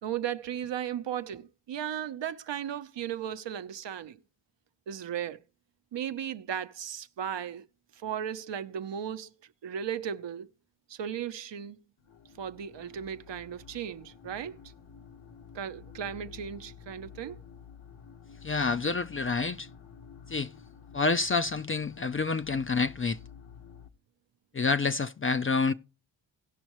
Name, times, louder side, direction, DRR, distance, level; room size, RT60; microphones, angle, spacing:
voice 1, 0.0-4.2 4.9-5.4 5.9-7.7 7.9-10.5 10.9-11.8 12.4-14.6 15.5-17.4, right 9 dB, 65° right, 0.8 m, -36 dB
sound 1, 12.0-23.9, left 7 dB, 80° left, 1.4 m, -51 dB
voice 2, 18.4-19.7 20.3-20.5 20.9-23.2 24.5-25.7, left 4 dB, 30° left, 0.4 m, -28 dB
18.0 x 6.4 x 3.0 m
wide cardioid pair, 115°, 47 cm